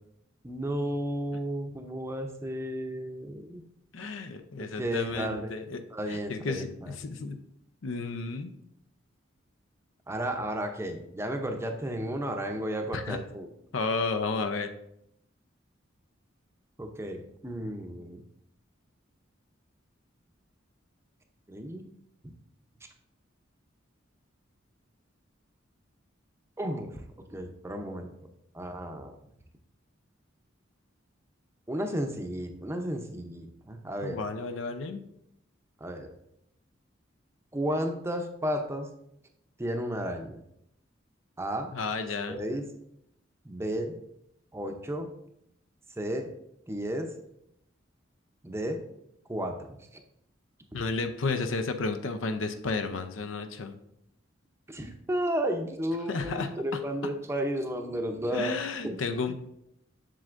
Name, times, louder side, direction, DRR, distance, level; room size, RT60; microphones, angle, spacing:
voice 1, 0.4-3.6 4.8-5.5 5.9-7.0 10.1-13.5 16.8-18.2 21.5-21.8 26.6-27.0 27.3-28.1 28.5-29.1 31.7-34.2 35.8-36.1 37.5-38.9 39.6-40.4 41.4-41.7 42.3-42.6 43.4-43.9 44.5-45.1 46.0-46.3 46.7-47.1 48.4-48.8 49.3-49.6 54.7-58.6 58.8-59.0 59.3-59.4, equal, 15° right, 5 dB, 0.6 m, -33 dB
voice 2, 3.9-5.8 6.1-7.4 7.8-8.5 12.9-13.2 13.7-14.7 34.0-35.0 41.7-42.4 50.7-53.8 56.1-56.5 58.3-59.3, left 4 dB, 80° left, 9 dB, 0.6 m, -32 dB
7.6 x 6.3 x 2.5 m, 0.77 s
head